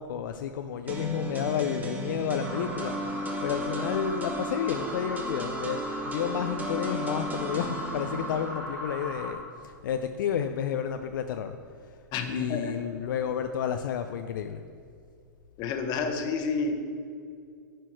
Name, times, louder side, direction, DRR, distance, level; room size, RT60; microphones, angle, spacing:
voice 1, 0.0-14.6, left 8 dB, 70° left, 7 dB, 0.4 m, -31 dB
sound 1, 0.9-8.5, right 1 dB, 15° right, 1.0 m, -35 dB
sound 2, 2.4-9.3, equal, 85° right, 2.1 m, -37 dB
voice 2, 12.1-12.6 15.6-16.8, left 4 dB, 40° left, 6 dB, 1.0 m, -29 dB
11.0 x 4.5 x 4.6 m, 2.3 s
hypercardioid pair, 115°, 11 cm